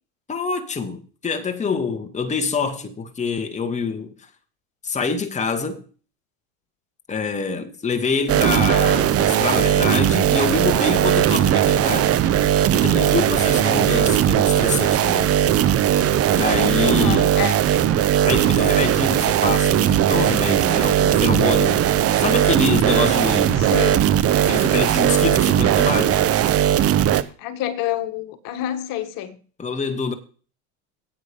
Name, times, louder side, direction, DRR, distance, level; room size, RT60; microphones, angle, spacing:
voice 1, 0.3-4.1 4.8-5.8 7.1-12.1 12.7-15.3 16.4-17.4 18.2-21.9 22.2-23.7 24.4-26.2 29.6-30.1, left 4 dB, 15° left, 1.6 m, -25 dB
sound 1, 8.3-27.2, right 10 dB, 35° right, 0.9 m, -18 dB
voice 2, 13.7-14.2 16.8-17.7 23.5-24.2 27.4-29.4, left 11 dB, 55° left, 1.7 m, -28 dB
9.5 x 8.6 x 5.4 m
hypercardioid pair, 90°, 41 cm